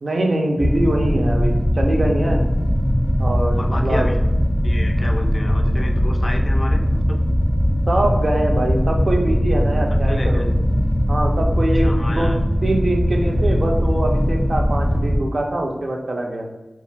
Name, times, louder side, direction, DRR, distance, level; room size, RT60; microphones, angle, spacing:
voice 1, 0.0-2.5 3.2-4.1 7.9-10.5 11.1-12.3 12.6-16.5, right 1 dB, 60° right, 1 dB, 0.4 m, -23 dB
sound 1, 0.6-15.2, equal, ahead, 0.6 m, -19 dB
voice 2, 3.5-4.2 4.6-6.8 7.1-7.2 10.1-10.4 11.8-12.4, left 1 dB, 50° left, 2 dB, 0.3 m, -31 dB
2.4 x 2.3 x 3.2 m, 1.1 s
wide cardioid pair, 75°, 0 cm